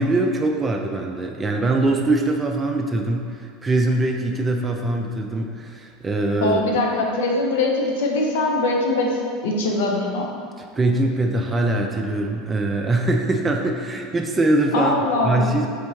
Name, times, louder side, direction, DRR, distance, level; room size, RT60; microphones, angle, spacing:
voice 1, 0.0-6.6 10.8-14.9 15.2-15.7, right 2 dB, 20° right, 2 dB, 0.3 m, -22 dB
voice 2, 6.4-10.3 14.7-15.5, left 2 dB, 75° left, 0 dB, 0.6 m, -22 dB
4.2 x 2.6 x 3.1 m, 2.2 s
hypercardioid pair, 85°, 0 cm